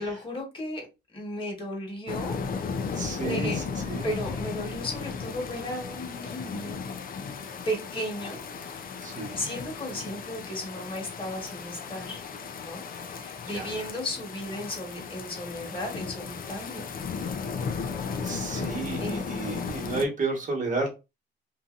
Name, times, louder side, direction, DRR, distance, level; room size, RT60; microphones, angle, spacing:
voice 1, 0.0-2.4 2.8-2.9 3.2-3.7 4.0-6.8 7.6-8.4 9.3-12.2 12.6-17.0 19.0-19.2, left 1 dB, 25° left, -1 dB, 1.5 m, -35 dB
sound 1, 2.1-20.0, left 5 dB, 45° left, 0.5 m, -35 dB
voice 2, 2.9-4.1 9.0-9.5 13.5-13.8 18.2-20.9, right 3 dB, 40° right, 0 dB, 1.3 m, -32 dB
2.7 x 2.6 x 2.5 m, 0.27 s
cardioid pair, 90°, 20 cm